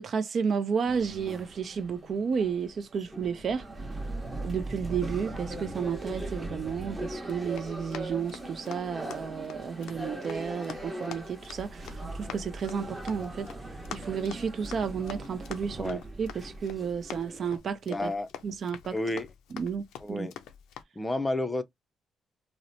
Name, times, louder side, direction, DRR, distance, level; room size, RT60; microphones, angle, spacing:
voice 1, 0.0-3.7 4.4-13.5 13.9-18.1 18.4-18.9 19.5-20.3, right 6 dB, 55° right, 0.4 m, -32 dB
sound 1, 0.8-17.6, right 2 dB, 15° right, 0.9 m, -40 dB
Run, 7.2-20.8, left 9 dB, 85° left, 0.4 m, -47 dB
voice 2, 17.9-18.3 18.9-19.3 20.0-20.3 21.0-21.6, left 2 dB, 15° left, 0.5 m, -30 dB
2.8 x 2.0 x 2.5 m
cardioid pair, 90°, 0 cm